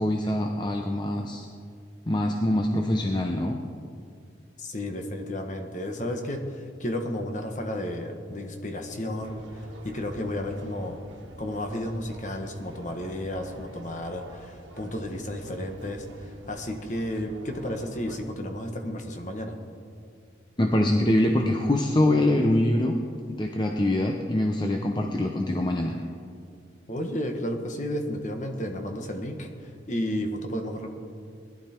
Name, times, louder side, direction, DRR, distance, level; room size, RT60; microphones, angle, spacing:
voice 1, 0.0-1.5 2.1-3.6 20.6-22.9 23.4-26.0, left 1 dB, 25° left, 2 dB, 0.7 m, -24 dB
voice 2, 4.6-11.0 11.4-19.6 26.9-29.5 29.9-30.9, left 1 dB, 40° left, 4 dB, 1.4 m, -32 dB
sound 1, 9.2-18.3, right 1 dB, 90° right, 1.5 m, -47 dB
19.5 x 11.5 x 4.5 m, 2.2 s
head